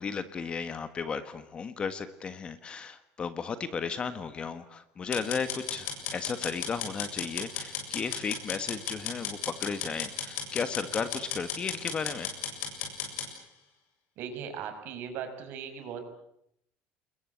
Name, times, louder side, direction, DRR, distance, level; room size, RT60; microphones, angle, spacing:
voice 1, 0.0-12.4, left 5 dB, 25° left, 11 dB, 1.4 m, -34 dB
sound 1, 5.1-13.3, left 7 dB, 60° left, 7.7 m, -35 dB
voice 2, 14.2-16.1, right 7 dB, 55° right, 7 dB, 5.8 m, -38 dB
28.0 x 22.0 x 8.5 m, 0.76 s
cardioid pair, 165°, 4 cm